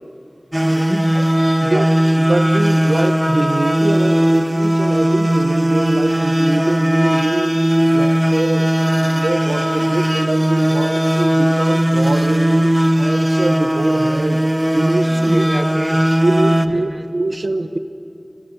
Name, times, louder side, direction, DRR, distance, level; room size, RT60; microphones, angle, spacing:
sound 1, 0.5-16.7, equal, 20° right, 1.3 m, -17 dB
voice 1, 0.6-1.1 1.6-1.9 15.1-16.0 16.7-17.1, equal, 5° right, 9 dB, 1.3 m, -27 dB
voice 2, 2.2-7.6 7.9-8.7 9.0-12.7 13.0-14.4 14.7-15.4 16.2-17.8, right 2 dB, 75° right, 8 dB, 1.2 m, -23 dB
28.0 x 22.5 x 8.1 m, 2.7 s
wide cardioid pair, 45°, 0 cm